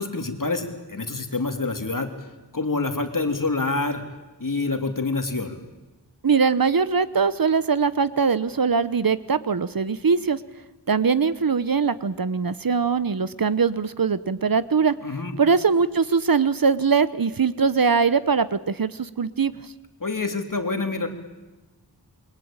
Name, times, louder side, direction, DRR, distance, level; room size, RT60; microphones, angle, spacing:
voice 1, 0.0-2.1 2.5-4.0 4.4-5.6 15.0-15.3 20.0-21.1, left 3 dB, 50° left, 6 dB, 3.1 m, -27 dB
voice 2, 6.2-10.4 10.9-15.0 15.4-19.5, right 5 dB, 55° right, 15 dB, 1.0 m, -21 dB
28.5 x 23.0 x 8.9 m, 1.1 s
wide cardioid pair, 75°, 41 cm